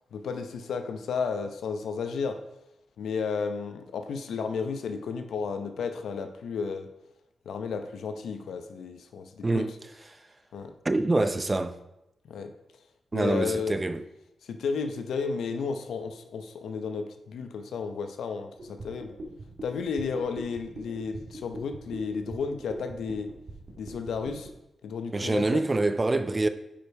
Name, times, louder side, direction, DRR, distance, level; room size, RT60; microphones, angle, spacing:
voice 1, 0.1-2.4 3.0-6.9 7.5-9.7 10.5-10.7 12.2-12.5 13.1-13.8 14.4-19.2 19.6-23.3 23.8-24.5 24.8-25.6, left 5 dB, 85° left, 0.8 m, -33 dB
voice 2, 10.8-11.8 13.1-14.0 25.1-26.5, right 2 dB, 25° right, 0.6 m, -25 dB
sound 1, 18.6-24.5, right 1 dB, 55° right, 2.0 m, -41 dB
8.7 x 5.3 x 4.7 m
cardioid pair, 75°, 0 cm